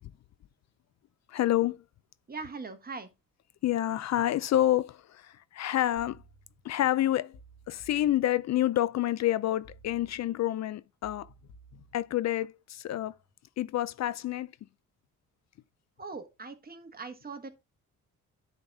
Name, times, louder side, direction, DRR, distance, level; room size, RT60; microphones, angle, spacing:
voice 1, 1.3-1.8 3.6-6.2 6.6-7.4 7.7-11.3 11.9-13.1 13.6-14.5, left 13 dB, 60° left, 0.4 m, -28 dB
voice 2, 2.3-3.1 16.0-17.5, right 4 dB, 30° right, 1.4 m, -41 dB
sound 1, 6.0-6.9 7.3-8.8 9.6-10.6 11.0-12.5 12.9-13.3, right 2 dB, 85° left, 1.4 m, -56 dB
10.5 x 4.0 x 3.5 m
cardioid pair, 95°, 31 cm